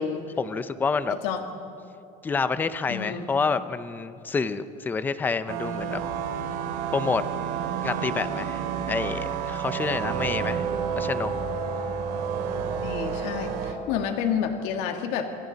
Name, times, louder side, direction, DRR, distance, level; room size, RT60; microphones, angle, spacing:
voice 1, 0.4-1.2 2.2-6.0 6.9-7.2 7.8-8.6 8.9-10.7 10.9-11.3, left 4 dB, 10° left, 12 dB, 0.5 m, -28 dB
voice 2, 1.1-1.4 2.9-3.2 12.4-15.4, left 7 dB, 70° left, 4 dB, 1.8 m, -30 dB
sound 1, 5.5-13.7, right 6 dB, 80° right, 2.7 m, -30 dB
27.5 x 27.5 x 4.0 m, 2.8 s
cardioid pair, 180°, 18 cm